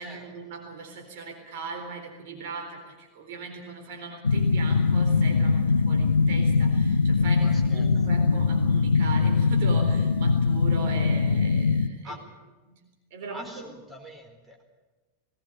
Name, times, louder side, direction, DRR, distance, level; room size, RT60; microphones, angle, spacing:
voice 1, 0.0-12.2 12.7-12.8 13.1-13.7, right 4 dB, 50° right, 3 dB, 4.0 m, -39 dB
sound 1, 4.2-11.9, left 4 dB, 75° left, 0.8 m, -22 dB
voice 2, 7.4-7.9 12.0-12.2 13.3-14.6, equal, 10° right, 2 dB, 4.4 m, -43 dB
19.5 x 18.0 x 9.1 m, 1.2 s
figure-of-eight pair, 90°, 0 cm